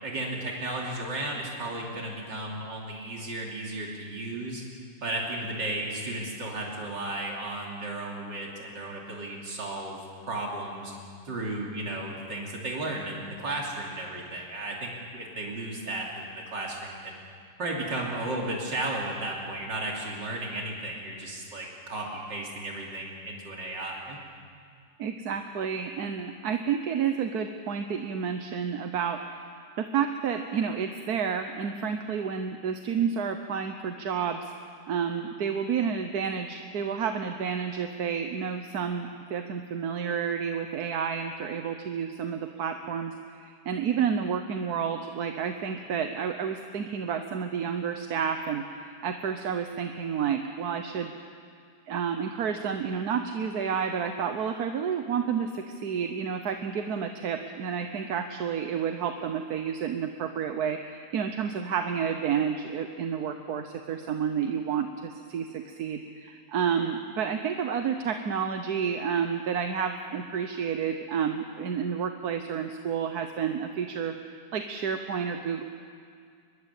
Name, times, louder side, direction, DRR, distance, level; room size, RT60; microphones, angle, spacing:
voice 1, 0.0-4.6 5.0-10.0 10.3-10.9 11.3-17.2 17.6-24.2, right 2 dB, 80° right, -2 dB, 3.6 m, -34 dB
voice 2, 25.0-29.5 29.8-34.5 34.9-51.1 51.9-75.6, right 7 dB, 60° right, 6 dB, 1.4 m, -30 dB
23.5 x 21.5 x 8.3 m, 2.2 s
omnidirectional pair, 1.9 m